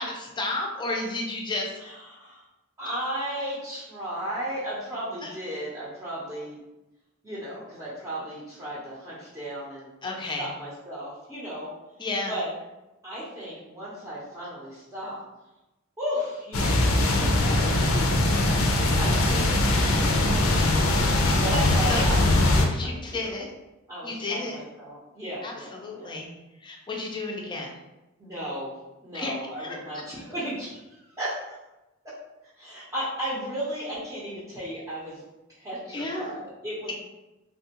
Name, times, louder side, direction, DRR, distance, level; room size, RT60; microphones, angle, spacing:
voice 1, 0.0-1.7 5.2-5.3 10.0-10.5 12.0-12.3 21.9-22.0 22.7-23.5 24.0-24.6 25.4-26.3 26.6-27.7 29.1-29.8 35.9-36.3 36.9-37.0, left 2 dB, 25° left, 0 dB, 0.5 m, -32 dB
voice 2, 1.8-2.4 2.8-6.6 7.2-9.9 10.4-11.7 12.3-12.5 13.0-15.2 16.0-18.4 19.0-22.2 22.5-23.3 23.9-26.2 28.2-28.7 29.0-31.6 32.6-35.2 35.6-36.9, equal, 15° right, -9 dB, 0.7 m, -35 dB
sound 1, 16.5-22.7, left 2 dB, 85° left, 0.5 m, -21 dB
3.3 x 2.3 x 2.9 m, 1.0 s
head